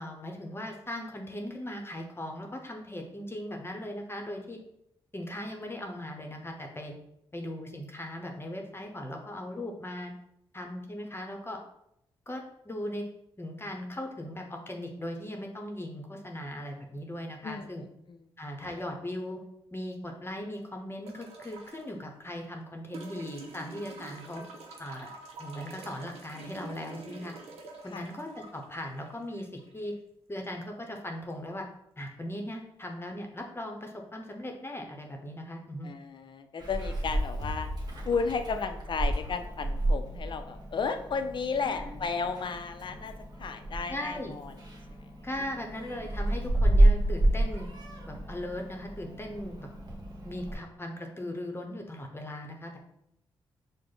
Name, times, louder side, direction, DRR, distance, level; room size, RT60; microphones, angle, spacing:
voice 1, 0.0-4.6 5.1-6.9 7.3-10.1 10.5-11.6 12.3-13.1 13.4-17.8 18.4-19.4 19.7-24.4 24.8-25.1 25.4-27.3 27.8-29.9 30.3-31.7 32.0-35.9 41.6-41.9 43.9-44.3 45.2-47.7 48.1-49.7 50.2-52.8, left 1 dB, 25° left, 3 dB, 0.8 m, -38 dB
voice 2, 17.4-18.2 27.9-28.0 35.8-37.7 38.1-43.1 43.4-44.5, left 5 dB, 50° left, 7 dB, 0.5 m, -33 dB
sound 1, 21.1-21.9 22.9-29.9 31.3-31.4, right 4 dB, 85° right, 0.6 m, -47 dB
Meow, 36.6-50.5, right 1 dB, 45° right, 1.2 m, -30 dB
4.9 x 2.1 x 3.8 m, 0.78 s
cardioid pair, 55°, 10 cm